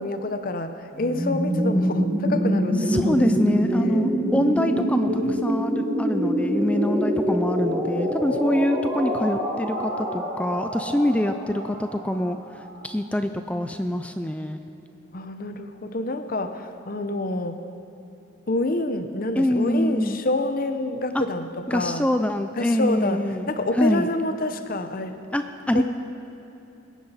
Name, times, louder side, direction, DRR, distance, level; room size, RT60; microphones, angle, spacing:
voice 1, 0.0-3.3 3.6-4.1 15.1-17.6 18.5-22.1 22.6-25.3 25.7-25.8, left 2 dB, 45° left, 8 dB, 0.7 m, -28 dB
sound 1, 0.9-12.7, equal, 15° right, 3.2 m, -25 dB
voice 2, 2.9-12.4 12.8-14.6 19.4-20.2 21.1-21.2 21.7-23.5 23.8-24.1 25.3-25.8, left 1 dB, 5° left, 8 dB, 0.4 m, -24 dB
21.5 x 10.0 x 4.1 m, 2.9 s
head